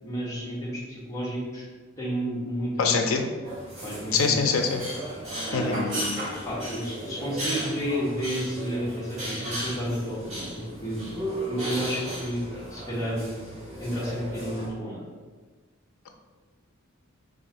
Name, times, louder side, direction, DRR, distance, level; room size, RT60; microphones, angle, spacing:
voice 1, 0.0-1.7 2.0-3.2 3.8-4.5 5.5-6.0 6.4-11.1 11.5-12.4 12.7-13.4 13.8-15.0, equal, 15° left, -7 dB, 0.7 m, -31 dB
voice 2, 2.8-3.3 4.1-4.8 5.5-5.8, left 5 dB, 80° left, 4 dB, 0.4 m, -23 dB
sound 1, 3.4-14.7, right 1 dB, 30° right, 1.0 m, -35 dB
2.5 x 2.4 x 4.1 m, 1.4 s
head